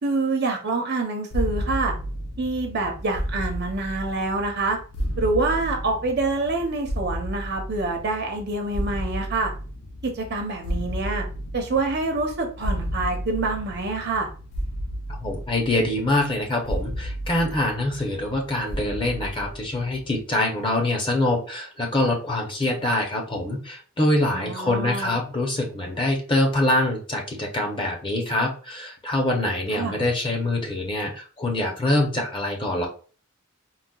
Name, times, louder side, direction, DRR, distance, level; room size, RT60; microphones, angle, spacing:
voice 1, 0.0-1.9 2.4-4.8 5.2-9.5 10.0-11.2 11.5-14.3 24.3-25.1 29.7-30.0, right 3 dB, 50° right, 3 dB, 0.6 m, -26 dB
sound 1, 1.3-20.2, equal, 80° left, 0.6 m, -32 dB
voice 2, 15.2-32.9, left 1 dB, 25° left, 1 dB, 0.6 m, -24 dB
4.0 x 2.1 x 2.2 m, 0.39 s
head